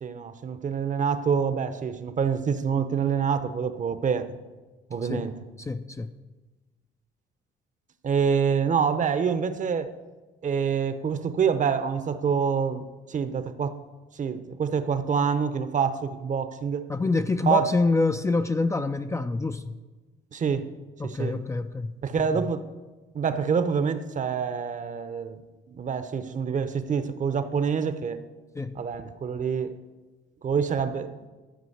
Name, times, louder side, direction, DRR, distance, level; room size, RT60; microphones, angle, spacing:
voice 1, 0.0-4.3 4.9-5.4 8.0-9.9 10.4-13.8 14.2-16.9 17.5-17.7 20.3-20.7 21.0-21.4 22.0-22.6 23.1-25.4 25.7-28.2 28.7-29.8 30.4-31.1, right 6 dB, 40° right, 11 dB, 0.8 m, -26 dB
voice 2, 5.0-5.3 5.6-6.2 16.9-19.8 21.0-21.9 22.3-22.5 28.6-28.9, left 3 dB, 15° left, 8 dB, 0.4 m, -26 dB
12.5 x 5.0 x 7.9 m, 1.2 s
cardioid pair, 110°, 19 cm